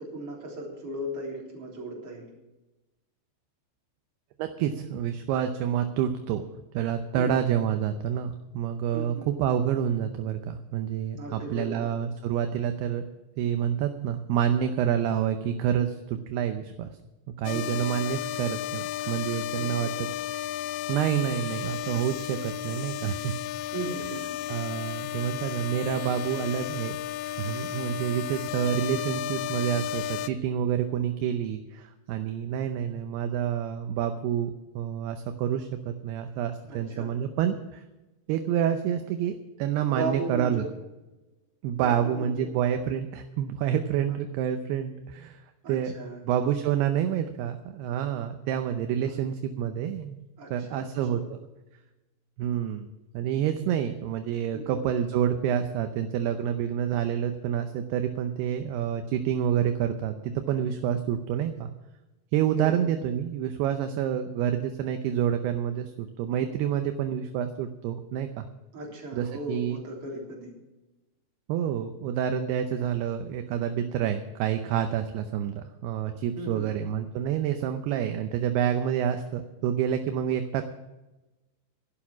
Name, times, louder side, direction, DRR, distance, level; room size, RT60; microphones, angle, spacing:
voice 1, 0.0-2.3 7.1-7.4 8.9-9.3 11.2-11.9 17.5-17.9 19.6-19.9 23.7-24.3 36.7-37.1 39.9-40.7 41.8-42.5 45.6-46.5 49.0-49.1 50.4-51.2 54.5-54.8 62.6-62.8 68.7-70.5 76.4-76.7, right 2 dB, 35° right, -2 dB, 4.0 m, -36 dB
voice 2, 4.4-6.4 6.7-13.0 13.4-16.9 17.4-20.1 20.9-23.3 24.5-27.0 27.4-37.8 38.3-40.6 41.6-45.4 45.7-45.9 46.2-50.2 50.5-51.4 52.4-52.9 53.1-61.7 62.3-68.5 69.1-69.8 71.5-80.6, right 9 dB, 75° right, 7 dB, 2.5 m, -28 dB
sound 1, 17.5-30.3, left 12 dB, 85° left, 3.0 m, -33 dB
12.0 x 11.0 x 6.1 m, 1.1 s
omnidirectional pair, 5.2 m